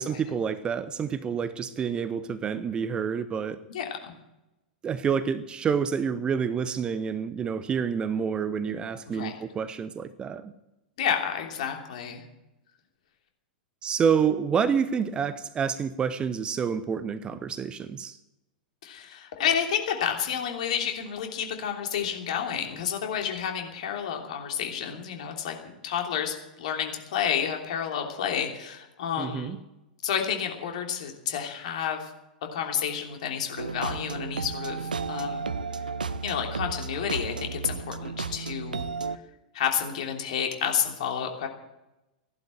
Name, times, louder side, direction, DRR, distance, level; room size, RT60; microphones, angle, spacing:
voice 1, 0.0-3.6 4.8-10.5 13.8-18.2 29.2-29.6, right 7 dB, 20° right, 15 dB, 0.8 m, -28 dB
voice 2, 3.7-4.1 9.1-9.4 11.0-12.2 18.8-25.5 25.8-29.6 30.0-32.1 32.5-35.5 36.2-38.8 39.5-41.5, left 8 dB, 55° left, 3 dB, 3.0 m, -30 dB
sound 1, 33.6-39.2, right 4 dB, 75° right, 0.8 m, -33 dB
15.5 x 11.5 x 7.8 m, 0.95 s
figure-of-eight pair, 95°, 5 cm